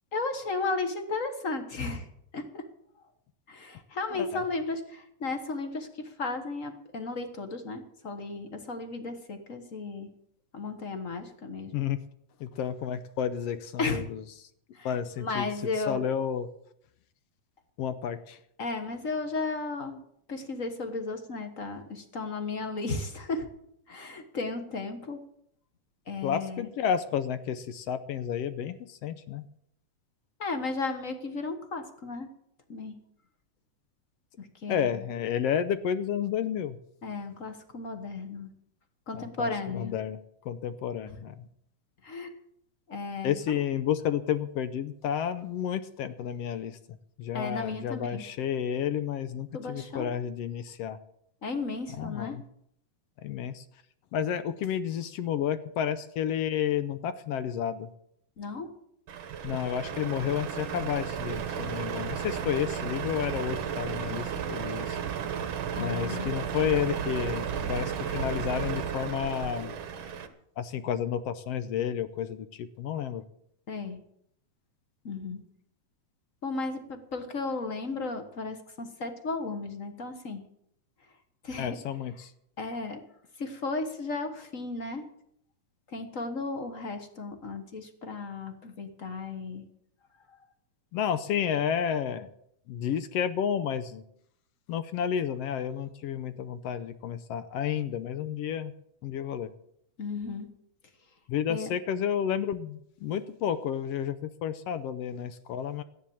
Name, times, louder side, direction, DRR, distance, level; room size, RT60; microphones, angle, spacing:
voice 1, 0.1-2.1 2.3-2.7 3.5-10.1 10.5-11.7 13.8-14.1 14.7-16.1 18.6-20.0 20.3-23.5 23.9-25.2 26.1-26.7 30.4-32.3 32.7-33.0 34.4-35.0 37.0-38.5 39.1-40.0 42.0-42.3 42.9-43.6 47.3-48.2 49.5-50.1 51.4-52.4 58.4-58.7 65.7-66.4 73.7-74.0 75.0-75.4 76.4-80.4 81.4-81.8 82.6-83.0 83.4-85.1 85.9-89.6 90.3-90.4 100.0-100.5 101.5-101.7, left 3 dB, 40° left, 7 dB, 1.1 m, -34 dB
voice 2, 12.4-14.2 14.8-15.5 15.9-16.5 17.8-18.4 26.2-29.4 34.7-36.8 39.1-40.2 40.4-41.3 43.2-46.8 47.2-51.0 52.0-52.4 53.2-53.6 54.1-57.9 59.4-65.0 65.8-69.9 70.6-73.2 81.6-82.3 90.9-92.3 92.7-94.0 94.7-98.7 99.0-99.5 101.3-104.1 104.4-105.8, left 9 dB, 75° left, 12 dB, 1.6 m, -31 dB
Truck, 59.1-70.3, right 8 dB, 55° right, 1.6 m, -33 dB
14.0 x 10.5 x 7.1 m, 0.72 s
omnidirectional pair, 3.3 m